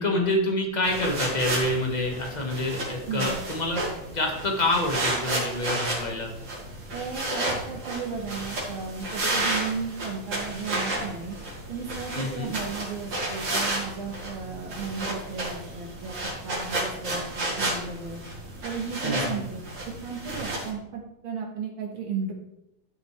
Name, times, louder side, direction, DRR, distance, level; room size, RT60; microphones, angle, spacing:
voice 1, 0.0-3.8 4.1-6.3 12.1-12.5 19.0-19.4, left 1 dB, 25° left, 0 dB, 1.5 m, -27 dB
sound 1, 0.8-20.7, right 1 dB, 65° right, 3.0 m, -32 dB
voice 2, 3.1-3.4 6.9-11.4 11.7-16.1 16.4-18.2 18.6-19.6 19.9-22.3, right 5 dB, 85° right, -1 dB, 2.3 m, -34 dB
12.0 x 6.1 x 3.3 m, 0.83 s
omnidirectional pair, 2.2 m